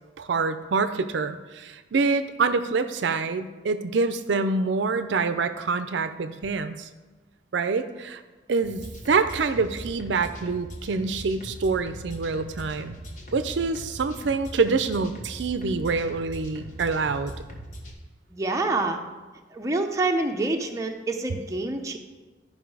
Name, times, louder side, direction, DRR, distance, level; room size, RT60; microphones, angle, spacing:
voice 1, 0.2-6.9 7.5-8.2 8.5-12.9 13.3-17.3, right 4 dB, 75° right, 10 dB, 0.5 m, -26 dB
sound 1, 8.6-17.9, equal, 40° left, 1.2 m, -40 dB
voice 2, 18.3-19.0 19.5-22.0, right 2 dB, 15° right, 3 dB, 0.6 m, -27 dB
11.0 x 5.3 x 4.7 m, 1.2 s
head